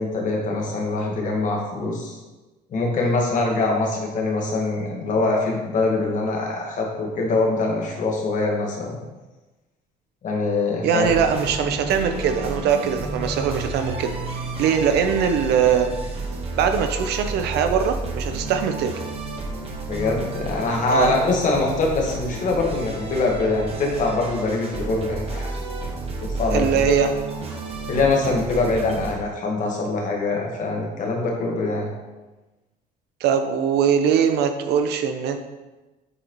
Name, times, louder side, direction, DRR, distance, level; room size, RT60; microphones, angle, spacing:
voice 1, 0.0-2.2 2.7-9.0 10.2-11.1 19.9-25.5 26.2-26.9 27.9-31.9, left 3 dB, 50° left, 0 dB, 1.4 m, -23 dB
voice 2, 10.8-15.9 16.6-19.0 20.9-21.1 26.5-27.1 33.2-35.4, right 7 dB, 75° right, 7 dB, 0.6 m, -21 dB
sound 1, 11.0-29.1, right 2 dB, 35° right, 1.2 m, -31 dB
7.8 x 4.0 x 3.0 m, 1.1 s
cardioid pair, 110°, 17 cm